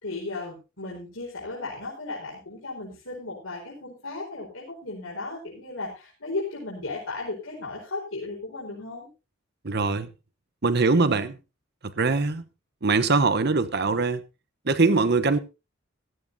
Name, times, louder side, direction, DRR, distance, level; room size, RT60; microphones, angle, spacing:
voice 1, 0.0-9.1, left 3 dB, 85° left, 4.6 m, -35 dB
voice 2, 9.6-10.1 10.6-11.4 11.8-12.5 12.8-14.2 14.6-15.4, right 3 dB, 55° right, 1.0 m, -22 dB
16.0 x 13.5 x 2.8 m
head